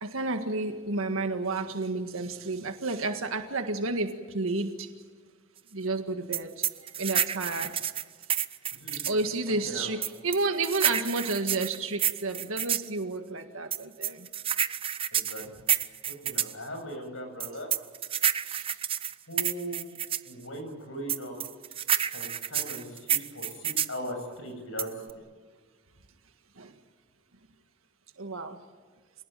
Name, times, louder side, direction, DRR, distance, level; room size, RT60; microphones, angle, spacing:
voice 1, 0.0-4.9 5.7-6.6 7.0-7.8 9.1-14.3 18.5-18.7 26.6-26.7 28.2-28.6, right 3 dB, 90° right, 6 dB, 1.8 m, -31 dB
sound 1, 6.3-9.2 10.0-12.9 13.7-16.5 17.4-20.3 21.1-24.0 24.8-25.1, right 9 dB, 25° right, 0.6 m, -29 dB
voice 2, 8.7-9.1 9.6-9.9 15.1-15.5 16.1-17.7 19.3-20.0 20.2-21.4 22.1-24.9, equal, 75° left, 5 dB, 7.7 m, -39 dB
27.5 x 19.0 x 9.2 m, 1.5 s
head